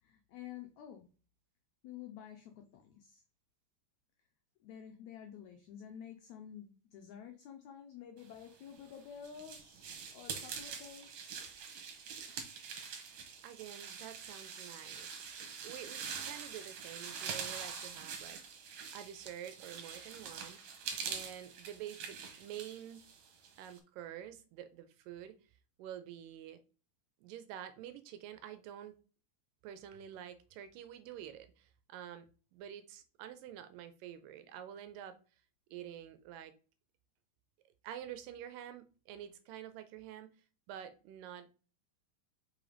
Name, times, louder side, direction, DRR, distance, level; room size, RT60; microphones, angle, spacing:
voice 1, 0.0-1.1 1.8-3.2 4.6-11.1, left 9 dB, 85° left, 5 dB, 1.6 m, -50 dB
sound 1, 8.6-23.8, right 6 dB, 65° right, 2.0 m, -45 dB
voice 2, 13.4-15.2 15.6-20.6 21.1-23.1 23.6-25.4 25.8-26.6 27.2-28.9 29.6-32.3 32.5-35.2 35.7-36.5 37.8-40.3 40.7-41.5, right 10 dB, 80° right, 10 dB, 2.1 m, -48 dB
5.5 x 3.8 x 5.0 m, 0.37 s
omnidirectional pair, 4.2 m